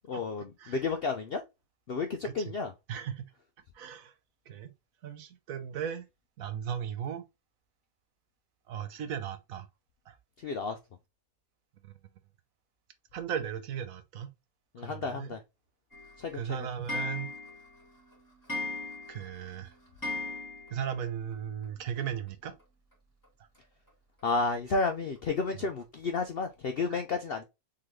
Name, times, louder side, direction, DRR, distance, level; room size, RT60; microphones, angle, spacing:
voice 1, 0.1-1.4 1.9-2.7 10.4-10.8 14.7-15.4 16.2-16.7 24.2-27.4, left 4 dB, 65° left, 0.6 m, -32 dB
voice 2, 2.9-3.3 3.7-4.1 4.5-4.7 5.0-6.1 6.4-7.2 8.7-9.7 10.1-10.2 11.8-11.9 13.1-14.3 14.8-15.4 16.3-17.3 19.1-19.7 20.7-22.5 26.9-27.0, right 8 dB, 65° right, 1.1 m, -36 dB
Clock, 15.9-21.0 21.3-21.4 21.6-21.7 22.0-22.1 23.2-23.3 23.9-24.0 24.5-24.6 25.2-25.3 25.8-25.9 26.4-26.5, left 2 dB, 10° left, 2.3 m, -39 dB
3.9 x 3.8 x 3.1 m
omnidirectional pair, 1.6 m